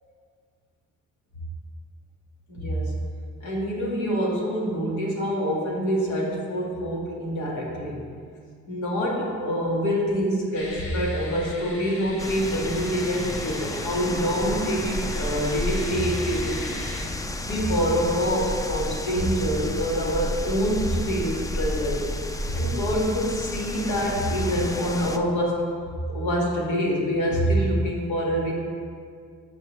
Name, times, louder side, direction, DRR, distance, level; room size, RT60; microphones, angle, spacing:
voice 1, 2.5-2.9 3.4-8.0 8.7-16.8 17.4-22.1 22.5-25.6 26.1-28.5, equal, 80° left, -3 dB, 2.1 m, -26 dB
sound 1, 10.5-17.1, left 2 dB, 45° left, 1.4 m, -40 dB
sound 2, 12.2-25.2, left 1 dB, 10° left, 0.4 m, -32 dB
12.5 x 5.4 x 3.3 m, 2.1 s
cardioid pair, 90°, 30 cm